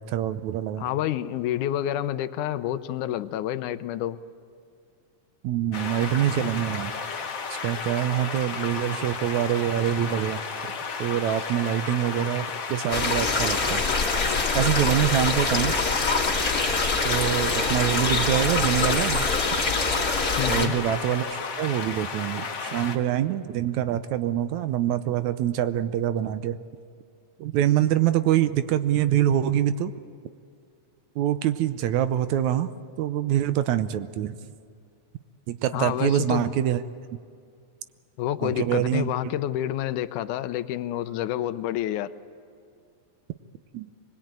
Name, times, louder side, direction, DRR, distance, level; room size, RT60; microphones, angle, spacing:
voice 1, 0.1-0.9 5.4-6.9 7.6-10.4 11.0-13.8 14.5-15.7 17.1-19.3 19.5-19.6 20.5-26.6 27.4-29.9 31.2-32.7 33.0-34.4 35.5-36.8 38.4-39.3 43.7-43.9, right 11 dB, 75° right, 12 dB, 2.0 m, -25 dB
voice 2, 0.8-4.2 20.4-20.8 35.7-36.5 38.2-42.1, left 12 dB, 85° left, 12 dB, 2.2 m, -28 dB
sound 1, 5.7-23.0, left 5 dB, 60° left, 0.8 m, -33 dB
sound 2, 12.9-20.7, left 4 dB, 30° left, 2.6 m, -24 dB
24.0 x 20.5 x 8.9 m, 2.4 s
omnidirectional pair, 3.5 m